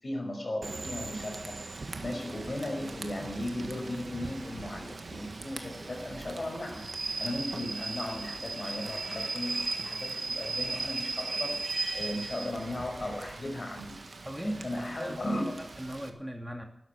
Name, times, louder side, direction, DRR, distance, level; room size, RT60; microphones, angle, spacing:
voice 1, 0.0-1.6 2.0-6.9 7.2-11.7 11.9-14.0 14.4-15.4, left 1 dB, 55° left, 3 dB, 5.8 m, -36 dB
Rain / Train, 0.6-16.1, right 3 dB, 70° right, 1.6 m, -38 dB
voice 2, 14.2-15.2 15.6-16.6, equal, 5° right, 3 dB, 2.5 m, -38 dB
12.5 x 12.0 x 9.0 m, 0.71 s
wide cardioid pair, 55°, 0 cm